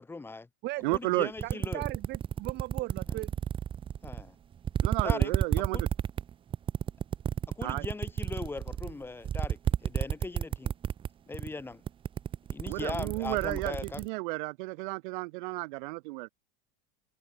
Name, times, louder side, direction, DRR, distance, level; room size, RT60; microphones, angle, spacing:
voice 1, 0.0-0.5 0.9-1.8 3.1-3.2 4.0-4.4 5.0-5.3 5.7-5.8 7.6-10.7 11.3-11.8 12.5-14.1, left 3 dB, 5° left, 7.2 m, -39 dB
voice 2, 0.8-1.3 4.8-5.9 7.6-7.8 12.7-16.3, right 25 dB, 55° right, 5.7 m, -32 dB
sound 1, 0.9-1.0 1.4-4.3 4.6-11.1 11.3-11.6 11.9-14.1, right 9 dB, 15° right, 1.4 m, -31 dB
voice 3, 1.4-3.3, right 20 dB, 35° right, 2.4 m, -37 dB
supercardioid pair, 175°, 29 cm